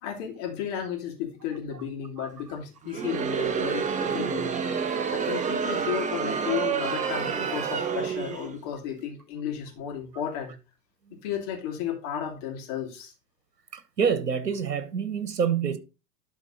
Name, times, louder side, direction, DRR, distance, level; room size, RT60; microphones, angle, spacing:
voice 1, 0.0-4.5 5.1-10.6 11.2-13.1, left 9 dB, 50° left, 3.0 m, -33 dB
Crowd, 2.8-8.6, right 6 dB, 15° right, 0.8 m, -28 dB
voice 2, 13.7-15.8, right 7 dB, 80° right, 1.1 m, -27 dB
11.5 x 4.6 x 3.9 m
figure-of-eight pair, 90°, 48 cm